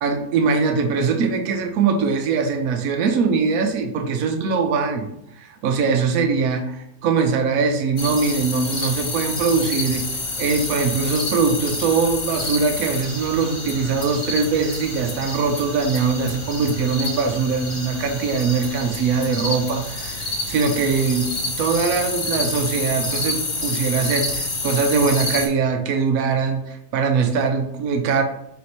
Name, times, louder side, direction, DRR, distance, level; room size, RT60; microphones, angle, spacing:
voice 1, 0.0-5.1 5.4-10.1 10.4-28.2, right 5 dB, 65° right, 5 dB, 1.0 m, -22 dB
sound 1, 8.0-25.5, left 2 dB, 85° left, 0.3 m, -28 dB
4.2 x 2.9 x 4.1 m, 0.78 s
omnidirectional pair, 1.8 m